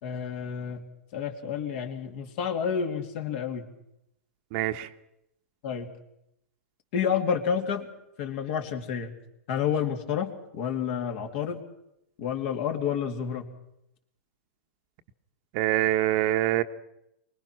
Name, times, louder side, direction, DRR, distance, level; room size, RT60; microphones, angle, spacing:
voice 1, 0.0-0.8 1.1-3.6 5.6-5.9 6.9-7.9 8.2-9.1 9.5-11.6 12.2-13.5, left 7 dB, 50° left, 5 dB, 2.9 m, -29 dB
voice 2, 4.5-4.9 15.5-16.6, right 14 dB, 45° right, 9 dB, 1.1 m, -24 dB
24.0 x 20.5 x 6.1 m, 0.82 s
hypercardioid pair, 120°, 8 cm